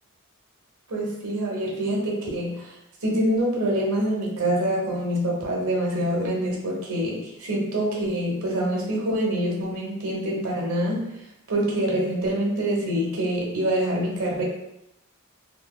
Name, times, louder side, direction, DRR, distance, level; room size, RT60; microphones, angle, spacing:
voice 1, 0.9-14.4, right 1 dB, 85° right, -3 dB, 1.0 m, -26 dB
3.3 x 2.7 x 2.3 m, 0.83 s
head